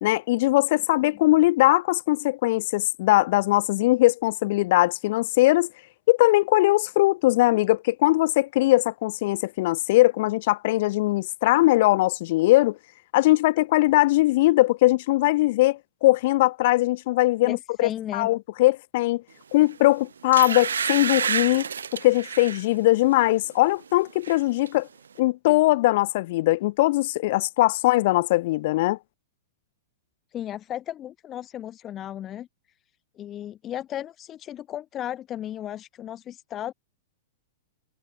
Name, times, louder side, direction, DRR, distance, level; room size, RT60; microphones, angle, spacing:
voice 1, 0.0-5.7 6.1-12.8 13.1-19.2 19.5-24.9 25.2-29.0, left 18 dB, 55° left, 0.4 m, -21 dB
voice 2, 17.4-18.3 30.3-32.5 33.1-36.7, left 11 dB, 30° left, 3.3 m, -35 dB
sound 1, 19.6-19.8 20.3-22.6 23.1-23.3 23.7-24.4 24.7-24.8, right 7 dB, 85° right, 1.7 m, -29 dB
hypercardioid pair, 120°, 0 cm